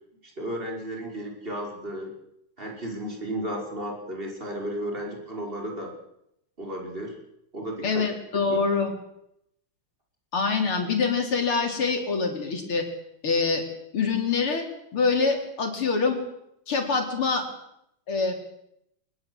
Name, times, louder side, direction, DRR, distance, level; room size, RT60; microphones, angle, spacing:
voice 1, 0.2-2.1 2.6-5.9 6.6-7.2 7.5-8.1 8.5-8.6, right 1 dB, 25° right, 0 dB, 5.5 m, -34 dB
voice 2, 7.8-8.9 10.3-12.9 13.2-13.6 13.9-14.7 14.9-16.2 16.7-17.5 18.1-18.3, left 4 dB, 90° left, 3 dB, 4.8 m, -25 dB
23.0 x 20.5 x 7.9 m, 0.77 s
omnidirectional pair, 2.3 m